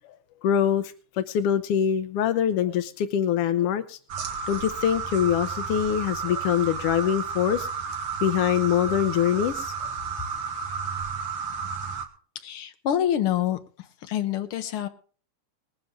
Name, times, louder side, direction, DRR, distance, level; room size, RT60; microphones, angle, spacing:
voice 1, 0.4-4.0 4.5-7.7 8.2-9.7, left 9 dB, 85° left, 11 dB, 1.3 m, -24 dB
sound 1, 4.1-12.1, right 6 dB, 50° right, 2.0 m, -32 dB
voice 2, 12.4-13.6 14.0-14.9, left 10 dB, 60° left, 8 dB, 1.5 m, -26 dB
20.0 x 10.5 x 3.7 m, 0.42 s
omnidirectional pair, 3.6 m